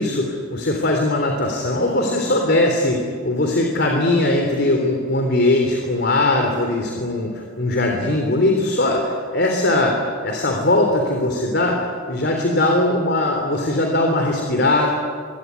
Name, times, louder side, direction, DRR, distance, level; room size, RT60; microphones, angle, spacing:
voice 1, 0.0-11.8 12.1-14.9, left 2 dB, 50° left, 2 dB, 3.5 m, -20 dB
26.0 x 23.0 x 9.7 m, 2.1 s
head